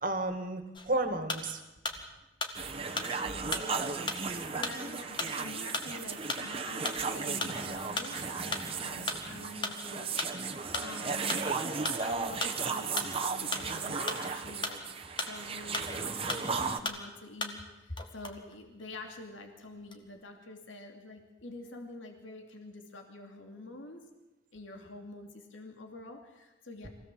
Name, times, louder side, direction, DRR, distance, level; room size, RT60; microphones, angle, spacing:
voice 1, 0.0-1.6 3.3-3.4 3.7-3.8, right 2 dB, 45° right, 8 dB, 2.1 m, -32 dB
sound 1, 0.7-2.1 2.4-16.0 16.3-17.7 18.0-19.2 19.6-20.2, left 3 dB, 25° left, 1.8 m, -37 dB
sound 2, 2.5-16.8, right 5 dB, 30° right, 1.3 m, -35 dB
voice 2, 3.1-3.9 4.5-10.1 10.7-11.5 12.0-14.8 15.2-24.0 24.5-26.9, left 2 dB, 75° left, 4 dB, 2.7 m, -46 dB
24.0 x 16.5 x 7.6 m, 1.1 s
head